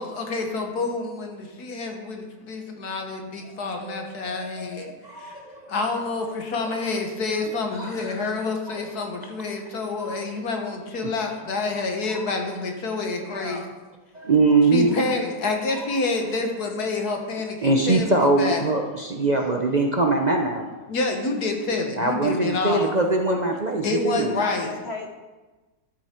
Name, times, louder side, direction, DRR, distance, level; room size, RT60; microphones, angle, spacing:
voice 1, 0.0-4.9 5.2-5.4 5.7-13.6 14.7-18.7 20.9-22.9 23.8-24.7, left 3 dB, 70° left, 3 dB, 1.8 m, -28 dB
voice 2, 3.8-4.3 4.7-4.8 5.0-5.6 7.7-8.2 10.0-10.2 14.1-15.0 17.6-20.7 22.0-24.4, right 2 dB, 45° right, 2 dB, 0.5 m, -22 dB
voice 3, 13.1-13.7 19.2-19.6 24.4-25.1, left 3 dB, 45° left, 3 dB, 1.1 m, -36 dB
11.5 x 8.4 x 4.4 m, 1.2 s
omnidirectional pair, 1.8 m